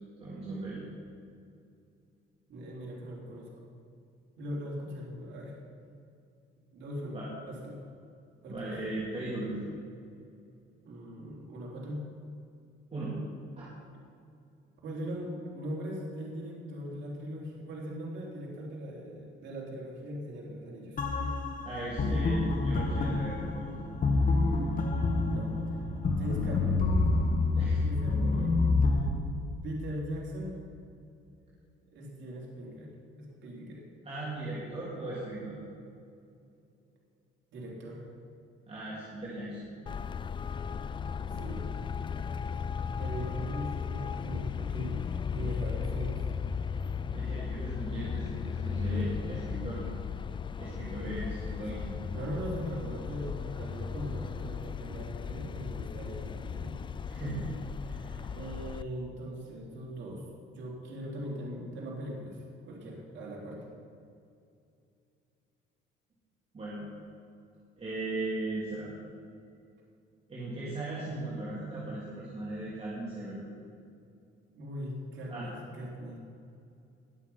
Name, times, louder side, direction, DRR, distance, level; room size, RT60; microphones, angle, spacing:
voice 1, 0.2-0.8 7.1-7.3 8.5-9.6 12.9-13.2 13.6-13.7 21.6-23.7 27.5-28.1 28.4-28.7 34.0-35.6 38.7-39.7 47.1-49.9 50.6-52.0 57.0-58.2 66.5-66.8 67.8-68.9 70.3-73.4 75.3-75.5, right 2 dB, 30° right, -8 dB, 3.3 m, -38 dB
voice 2, 2.5-3.5 4.4-5.6 6.7-7.2 7.5-7.8 8.4-8.7 10.8-12.1 14.8-21.3 22.0-22.2 25.3-25.8 26.1-26.8 27.8-28.5 29.6-30.6 31.9-32.9 33.2-33.8 37.5-38.1 41.2-41.8 43.0-46.3 52.1-56.8 58.3-60.2 60.5-63.7 74.5-76.2, equal, 60° right, -3 dB, 3.4 m, -40 dB
sound 1, 21.0-29.1, left 3 dB, 40° left, 1.7 m, -28 dB
Traffic noise roadway noise, 39.9-58.8, left 6 dB, 25° left, 0.3 m, -36 dB
20.0 x 7.2 x 5.7 m, 2.5 s
cardioid pair, 115°, 21 cm